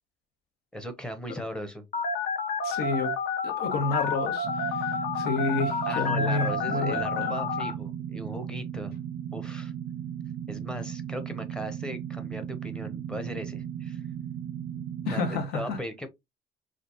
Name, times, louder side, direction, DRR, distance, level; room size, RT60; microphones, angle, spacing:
voice 1, 0.7-1.8 5.9-8.9 9.3-9.7 10.5-14.0 14.7-16.1, equal, 5° left, 0.8 m, -38 dB
Telephone, 1.9-7.7, left 4 dB, 55° left, 1.0 m, -30 dB
voice 2, 2.6-3.2 3.4-7.3 15.0-15.8, left 3 dB, 80° left, 1.7 m, -30 dB
sound 1, 4.4-15.4, right 9 dB, 60° right, 0.5 m, -36 dB
5.0 x 3.3 x 2.9 m
cardioid pair, 165°, 17 cm